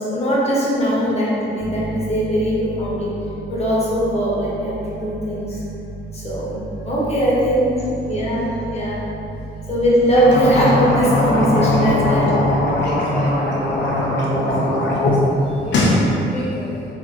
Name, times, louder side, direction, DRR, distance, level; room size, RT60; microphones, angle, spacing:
voice 1, 0.0-3.1 3.5-5.6 6.1-6.6 6.8-9.0 9.7-12.5, equal, 30° left, -7 dB, 1.3 m, -20 dB
sound 1, 1.6-14.8, right 3 dB, 55° right, 0.5 m, -35 dB
sound 2, 10.1-15.1 15.5-16.0, left 2 dB, 65° left, 0.8 m, -20 dB
voice 2, 12.8-16.9, equal, 5° left, -8 dB, 0.5 m, -32 dB
4.3 x 3.3 x 3.0 m, 3.0 s
cardioid pair, 90°, 20 cm